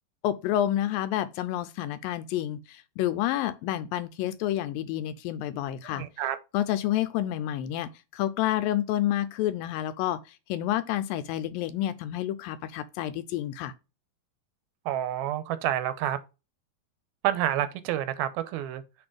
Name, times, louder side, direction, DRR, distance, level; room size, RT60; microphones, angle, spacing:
voice 1, 0.2-6.0 6.5-13.7, left 12 dB, 80° left, 2.2 m, -29 dB
voice 2, 5.9-6.4 14.9-16.2 17.2-18.8, right 12 dB, 90° right, 2.6 m, -28 dB
7.9 x 3.6 x 4.8 m
omnidirectional pair, 4.3 m